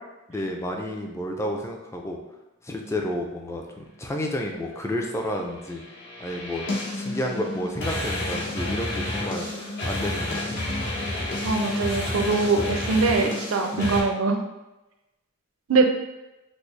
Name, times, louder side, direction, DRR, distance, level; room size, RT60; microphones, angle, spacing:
voice 1, 0.3-2.2 2.6-5.8 6.2-9.5 9.8-10.6 13.7-13.9, left 1 dB, 15° left, 1 dB, 0.4 m, -31 dB
sound 1, 5.6-14.0, left 1 dB, 60° left, 0.9 m, -30 dB
voice 2, 11.4-14.4 15.7-15.9, right 3 dB, 70° right, 4 dB, 0.5 m, -22 dB
4.2 x 2.0 x 3.2 m, 0.99 s
head